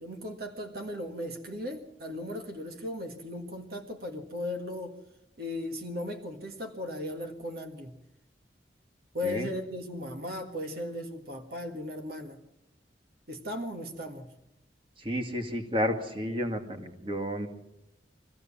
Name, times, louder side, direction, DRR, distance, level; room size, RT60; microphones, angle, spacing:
voice 1, 0.0-5.0 5.4-7.9 9.1-12.4 13.3-14.3, left 1 dB, 60° right, 4 dB, 1.7 m, -37 dB
voice 2, 15.0-17.5, equal, 30° right, 5 dB, 2.2 m, -31 dB
23.5 x 15.5 x 7.3 m, 0.91 s
head